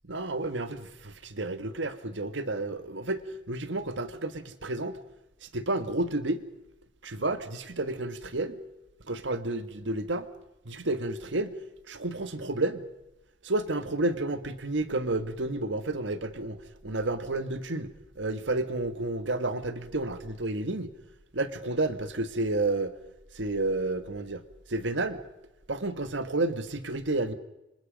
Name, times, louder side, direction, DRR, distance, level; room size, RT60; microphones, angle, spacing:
voice 1, 0.1-5.0 5.4-6.4 7.0-8.6 9.0-10.3 10.6-11.6 11.9-12.9 13.4-20.9 21.3-22.9 23.3-24.4 24.7-25.2 25.7-27.3, right 2 dB, 80° right, 1.5 m, -31 dB
26.5 x 26.0 x 5.2 m
head